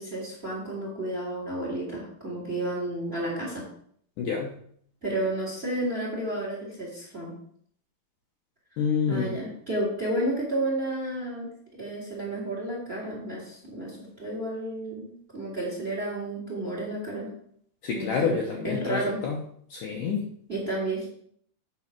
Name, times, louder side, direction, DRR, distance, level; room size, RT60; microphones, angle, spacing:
voice 1, 0.0-3.6 5.0-7.3 9.1-17.3 17.9-19.2 20.5-21.1, right 1 dB, 20° right, -2 dB, 1.9 m, -31 dB
voice 2, 4.2-4.5 8.8-9.4 17.8-19.4 19.7-20.3, left 6 dB, 70° left, 0 dB, 2.0 m, -28 dB
9.0 x 4.2 x 5.9 m, 0.63 s
omnidirectional pair, 4.8 m